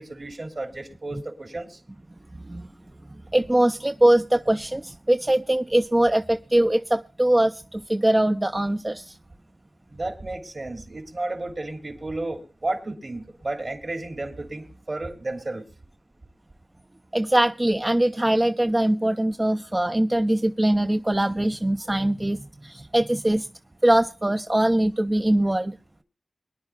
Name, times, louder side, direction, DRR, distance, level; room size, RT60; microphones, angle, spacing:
voice 1, 0.0-1.8 9.9-15.6, right 2 dB, 60° right, 2.8 m, -32 dB
voice 2, 2.4-2.7 3.3-9.2 17.1-23.5 23.8-25.8, right 1 dB, 30° right, 0.5 m, -22 dB
23.5 x 10.5 x 2.4 m
cardioid pair, 40°, 0 cm